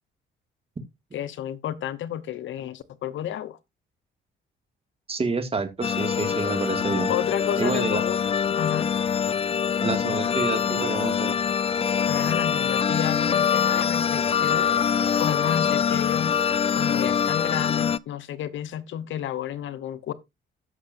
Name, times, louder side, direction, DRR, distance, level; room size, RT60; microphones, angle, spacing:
voice 1, 1.1-3.6 7.1-8.9 12.1-14.7 15.2-16.4 16.7-20.1, left 10 dB, 75° left, 0.9 m, -31 dB
voice 2, 5.1-7.1 7.6-8.0 9.8-11.3, right 4 dB, 30° right, 2.0 m, -28 dB
sound 1, 5.8-18.0, left 7 dB, 30° left, 0.4 m, -24 dB
15.0 x 6.5 x 2.6 m
cardioid pair, 90°, 20 cm